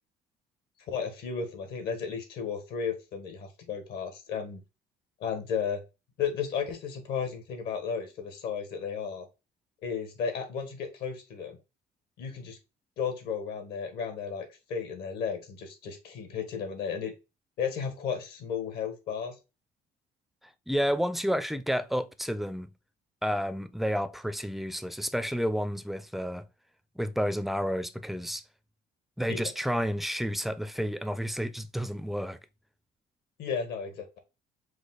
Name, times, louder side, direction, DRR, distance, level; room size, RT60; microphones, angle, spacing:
voice 1, 0.8-4.6 5.2-5.8 6.2-9.3 9.8-11.6 12.2-12.6 13.0-17.1 17.6-19.4 29.3-29.4 33.4-34.2, left 6 dB, 75° left, 1.3 m, -34 dB
voice 2, 20.7-22.7 23.2-26.5 27.0-28.4 29.2-32.4, equal, ahead, 0.3 m, -30 dB
5.0 x 2.1 x 3.8 m
cardioid pair, 110°, 17 cm